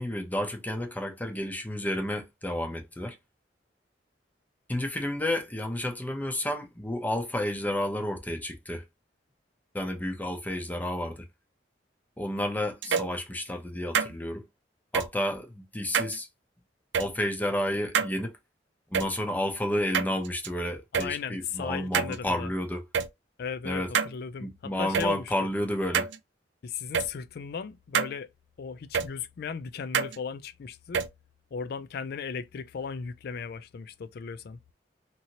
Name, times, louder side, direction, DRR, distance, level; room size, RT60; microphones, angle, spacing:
voice 1, 0.0-3.2 4.7-8.8 9.7-11.3 12.2-14.4 14.9-16.3 17.0-18.4 18.9-22.9 23.6-23.9 24.4-26.1, left 1 dB, 10° left, 0.6 m, -31 dB
sound 1, 12.8-13.1 13.9-14.1 14.9-15.1 15.9-16.2 16.9-17.1 17.9-18.1 18.9-19.1 19.9-20.5 20.9-21.1 21.9-22.2 22.9-23.1 23.9-24.1 24.9-25.1 25.9-26.2 26.9-27.1 27.9-28.1 28.9-29.1 29.9-30.2 30.9-31.1, right 6 dB, 90° right, 0.4 m, -26 dB
voice 2, 20.9-22.5 23.4-25.5 26.6-28.3 28.6-31.1 31.5-34.6, left 6 dB, 60° left, 0.4 m, -36 dB
2.9 x 2.7 x 2.8 m
head